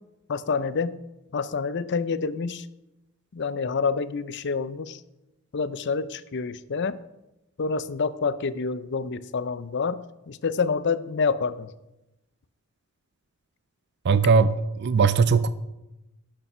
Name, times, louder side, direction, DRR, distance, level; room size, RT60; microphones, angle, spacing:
voice 1, 0.3-1.0 1.3-2.7 3.3-5.0 5.5-7.0 7.6-11.7, left 5 dB, 50° left, 15 dB, 0.5 m, -27 dB
voice 2, 14.1-14.5 14.8-15.5, right 5 dB, 50° right, 14 dB, 0.4 m, -19 dB
12.0 x 6.8 x 5.5 m, 0.95 s
head